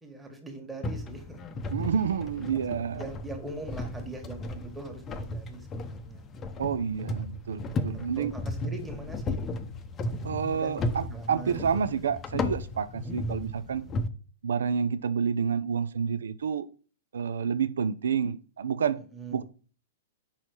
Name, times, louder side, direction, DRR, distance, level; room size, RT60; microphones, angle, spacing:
voice 1, 0.0-1.4 2.5-6.3 7.6-9.4 10.5-10.7 11.1-11.6 13.1-13.3 18.9-19.4, right 2 dB, 10° right, 1.5 m, -42 dB
sound 1, 0.8-14.1, left 2 dB, 25° left, 0.7 m, -35 dB
voice 2, 1.7-3.0 6.6-8.3 10.2-13.9 14.4-16.7 17.1-19.0 19.3-19.4, right 7 dB, 70° right, 0.4 m, -29 dB
5.6 x 4.3 x 4.8 m
figure-of-eight pair, 110°, 0 cm